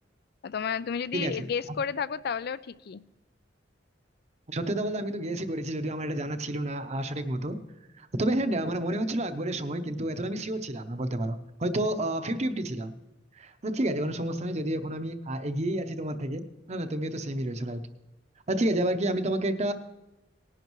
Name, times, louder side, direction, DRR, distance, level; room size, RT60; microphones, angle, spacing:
voice 1, 0.4-3.0, left 6 dB, 60° left, 16 dB, 0.4 m, -32 dB
voice 2, 4.5-7.6 8.0-12.9 13.4-17.8 18.5-19.7, right 1 dB, 35° right, 9 dB, 0.8 m, -30 dB
18.5 x 11.0 x 3.1 m, 1.0 s
head